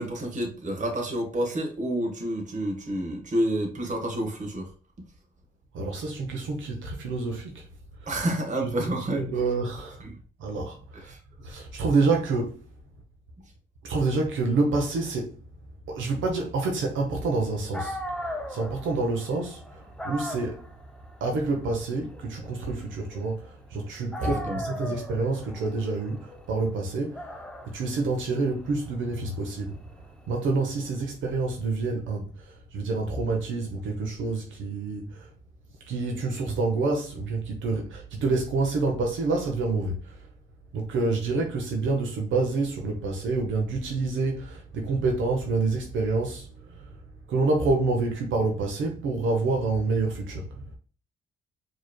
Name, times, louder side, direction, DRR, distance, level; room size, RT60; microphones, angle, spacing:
voice 1, 0.0-4.7 8.1-9.2 10.0-10.1 11.1-11.2 24.2-24.6, right 1 dB, 40° right, 1.3 m, -29 dB
voice 2, 5.7-7.6 8.6-10.0 10.4-11.1 11.4-12.6 13.8-15.3 15.9-18.0 18.5-20.7 21.2-27.3 27.7-29.8 30.3-35.3 35.9-40.1 40.7-46.9 47.3-50.7, right 3 dB, 75° right, 0.9 m, -28 dB
Dog, 17.4-17.5 17.7-23.8 24.1-30.9, left 1 dB, 5° left, 0.6 m, -39 dB
4.7 x 3.1 x 2.2 m
cardioid pair, 90°, 20 cm